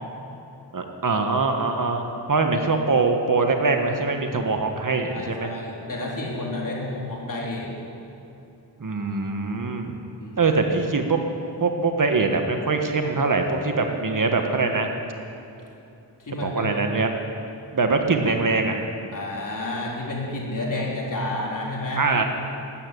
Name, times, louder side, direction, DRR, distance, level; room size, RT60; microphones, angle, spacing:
voice 1, 0.7-5.5 8.8-9.9 10.4-11.2 11.6-14.9 16.4-17.1 17.7-18.8 20.7-20.8 22.0-22.2, right 3 dB, 45° right, 4 dB, 1.4 m, -23 dB
voice 2, 5.1-7.7 10.2-10.4 16.2-16.7 19.1-22.1, left 2 dB, 45° left, -3 dB, 3.8 m, -30 dB
13.0 x 9.1 x 9.8 m, 2.8 s
cardioid pair, 65°, 43 cm